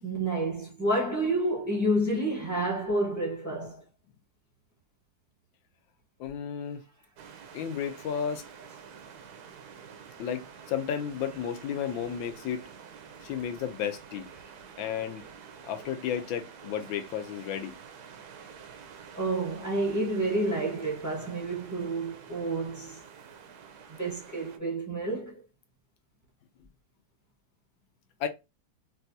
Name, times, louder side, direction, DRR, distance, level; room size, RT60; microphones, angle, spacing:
voice 1, 0.0-3.8 15.6-15.7 19.1-23.0 24.0-25.4, right 1 dB, 15° right, 0.6 m, -29 dB
voice 2, 6.2-6.8 7.5-8.4 10.2-12.7 13.2-14.3 14.8-15.2 15.7-17.7 28.2-28.3, left 8 dB, 80° left, 1.4 m, -33 dB
sound 1, 7.2-24.6, right 6 dB, 70° right, 1.0 m, -48 dB
4.1 x 2.3 x 2.7 m
omnidirectional pair, 2.1 m